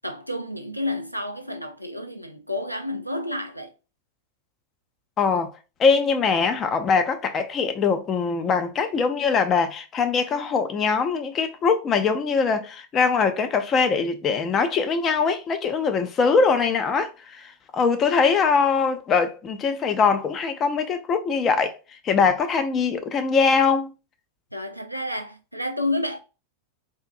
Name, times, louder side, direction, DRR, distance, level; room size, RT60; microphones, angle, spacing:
voice 1, 0.0-3.7 24.5-26.2, left 1 dB, 90° left, 0.3 m, -30 dB
voice 2, 5.2-21.8 22.0-23.9, left 5 dB, 25° left, 0.5 m, -22 dB
3.6 x 2.6 x 2.4 m
figure-of-eight pair, 90°, 0 cm